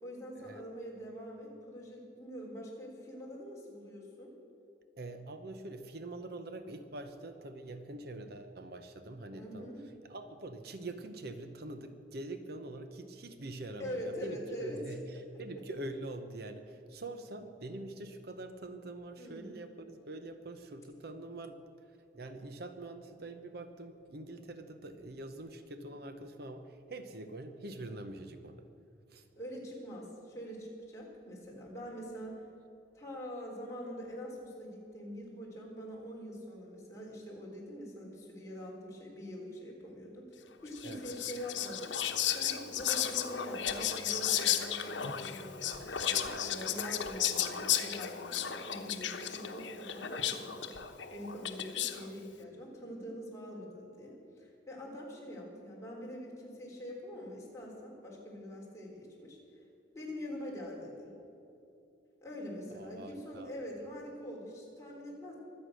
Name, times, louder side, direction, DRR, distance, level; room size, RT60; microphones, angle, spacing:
voice 1, 0.0-4.3 9.3-9.8 13.8-14.8 19.2-19.5 29.4-32.4 32.9-50.7 51.1-59.4 59.9-61.1 62.2-65.4, equal, 15° left, -4 dB, 3.9 m, -44 dB
voice 2, 5.0-9.7 10.0-21.6 22.1-28.6 29.1-29.2 40.8-41.0 62.7-63.5, right 2 dB, 55° right, 8 dB, 0.9 m, -44 dB
Whispering, 40.7-52.1, left 10 dB, 80° left, 1.1 m, -34 dB
24.0 x 8.6 x 6.4 m, 2.9 s
head